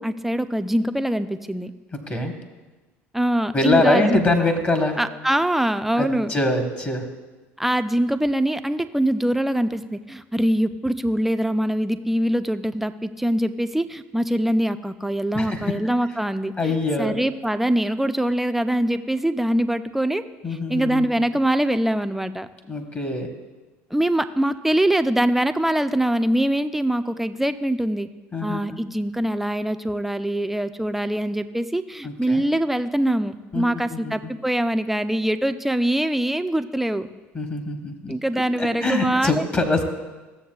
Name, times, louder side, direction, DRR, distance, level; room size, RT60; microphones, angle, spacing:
voice 1, 0.0-1.7 3.1-4.2 5.0-6.3 7.6-20.2 20.7-22.5 23.9-28.1 28.4-37.1 38.1-39.4, right 1 dB, 5° right, 10 dB, 0.4 m, -23 dB
voice 2, 1.9-2.3 3.5-5.0 6.0-7.1 15.3-15.7 16.6-17.1 20.4-21.0 22.7-23.3 28.3-28.6 32.0-32.4 33.5-34.3 37.3-39.8, left 2 dB, 25° left, 4 dB, 1.2 m, -24 dB
14.5 x 7.1 x 2.3 m, 1.2 s
hypercardioid pair, 65°, 7 cm